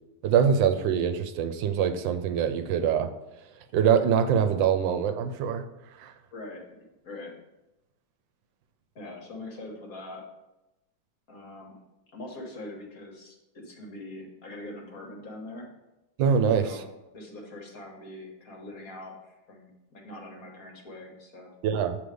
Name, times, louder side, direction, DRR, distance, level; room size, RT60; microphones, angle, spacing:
voice 1, 0.2-3.1 3.7-5.6 6.0-6.1 16.2-16.8 21.6-22.0, right 7 dB, 85° right, 8 dB, 1.3 m, -24 dB
voice 2, 6.3-6.6 7.0-7.3 8.9-10.2 11.3-11.8 12.1-15.7 16.6-16.9 17.1-21.5, left 2 dB, 55° left, 0 dB, 1.5 m, -42 dB
7.7 x 3.3 x 5.1 m, 0.95 s
omnidirectional pair, 2.0 m